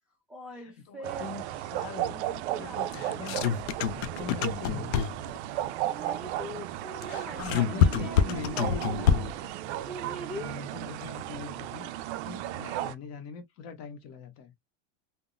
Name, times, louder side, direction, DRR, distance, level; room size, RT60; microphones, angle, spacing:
voice 1, 0.3-1.3 2.5-2.8 5.6-10.7, right 1 dB, 5° right, 0.5 m, -42 dB
voice 2, 0.9-1.4 1.7-5.2 7.4-9.1 10.4-14.5, left 6 dB, 40° left, 1.1 m, -42 dB
sound 1, 1.0-12.9, right 13 dB, 60° right, 0.5 m, -35 dB
sound 2, 2.9-5.4 7.0-9.5, left 8 dB, 55° left, 0.5 m, -26 dB
3.5 x 2.1 x 2.5 m
supercardioid pair, 155°, 38 cm